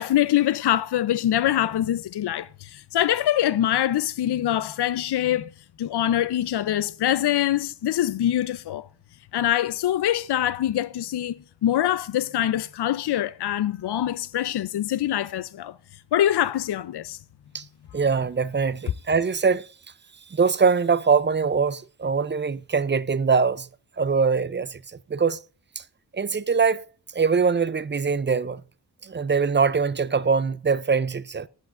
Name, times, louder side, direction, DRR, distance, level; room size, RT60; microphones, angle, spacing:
voice 1, 0.0-5.5 5.8-8.9 9.3-15.7 16.1-17.2, left 12 dB, 70° left, 0.5 m, -24 dB
voice 2, 17.9-19.7 20.3-23.7 24.0-24.8 25.1-25.4 26.1-26.9 27.1-28.6 29.0-31.5, right 5 dB, 30° right, 0.4 m, -22 dB
19.5 x 8.4 x 2.5 m
wide cardioid pair, 70°, 41 cm